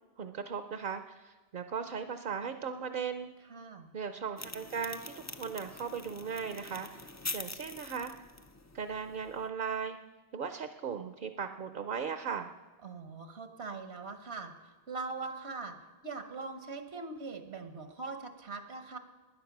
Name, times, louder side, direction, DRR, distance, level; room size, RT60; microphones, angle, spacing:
voice 1, 0.2-3.3 3.9-7.0 7.3-8.1 8.7-10.0 10.3-12.5, right 6 dB, 55° right, 8 dB, 0.8 m, -37 dB
voice 2, 3.5-3.9 12.8-14.5 14.9-15.8 16.0-19.0, right 4 dB, 80° right, 7 dB, 1.3 m, -41 dB
sound 1, 4.4-9.5, left 3 dB, 25° left, 0.4 m, -44 dB
19.5 x 10.0 x 6.0 m, 1.3 s
omnidirectional pair, 1.1 m